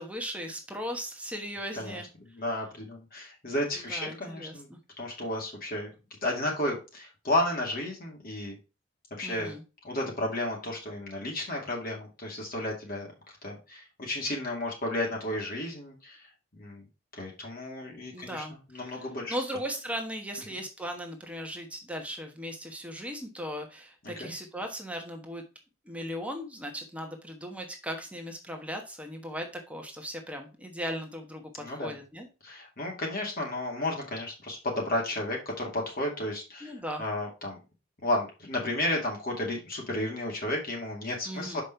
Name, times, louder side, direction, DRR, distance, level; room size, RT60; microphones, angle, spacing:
voice 1, 0.0-2.1 3.8-4.8 9.2-9.6 18.1-18.5 18.8-25.4 25.8-32.3 36.6-37.0 41.3-41.6, equal, 5° right, 3 dB, 1.2 m, -37 dB
voice 2, 2.3-4.7 5.0-5.9 6.2-8.6 9.1-9.6 9.8-16.9 17.1-19.3 24.0-24.3 31.6-32.0 32.4-37.6 38.0-41.6, left 1 dB, 45° left, -1 dB, 2.3 m, -33 dB
6.4 x 5.2 x 4.4 m, 0.30 s
head